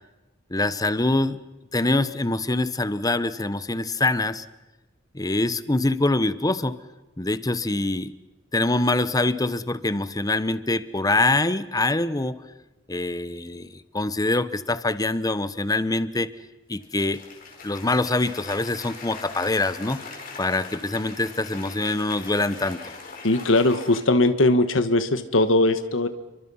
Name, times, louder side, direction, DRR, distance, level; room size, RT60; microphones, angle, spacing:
voice 1, 0.5-1.4 1.7-4.4 5.1-6.8 7.2-8.1 8.5-12.4 12.9-16.3 16.7-17.2 17.6-22.8, left 2 dB, 20° left, 14 dB, 1.0 m, -24 dB
Cheering / Applause, 16.8-24.0, left 4 dB, 45° left, 4.6 m, -41 dB
voice 2, 23.2-26.1, left 2 dB, 90° left, 10 dB, 1.4 m, -20 dB
29.5 x 24.0 x 5.6 m, 1.1 s
head